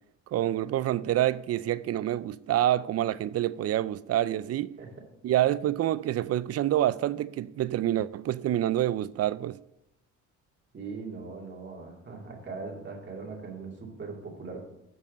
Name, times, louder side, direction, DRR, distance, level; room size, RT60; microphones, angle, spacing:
voice 1, 0.3-4.8 5.2-9.6, right 12 dB, 55° right, 0.4 m, -27 dB
voice 2, 10.7-14.6, right 4 dB, 35° right, 2.5 m, -40 dB
6.8 x 5.4 x 6.5 m
cardioid pair, 90°, 30 cm